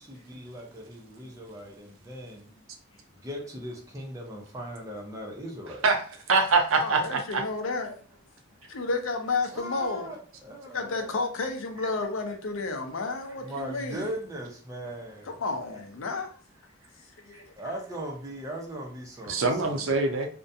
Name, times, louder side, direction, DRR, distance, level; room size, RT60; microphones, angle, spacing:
voice 1, 0.0-2.5 3.2-5.8 9.5-11.2 11.8-11.9 13.2-15.3 16.8-19.8, equal, 15° right, 0.6 m, -39 dB
voice 2, 5.8-7.4 19.3-20.3, right 3 dB, 80° right, 0.5 m, -24 dB
voice 3, 6.8-8.0 8.7-10.1 10.7-14.1 15.2-16.4 17.2-17.5, left 3 dB, 75° left, 0.5 m, -31 dB
2.4 x 2.1 x 2.6 m
head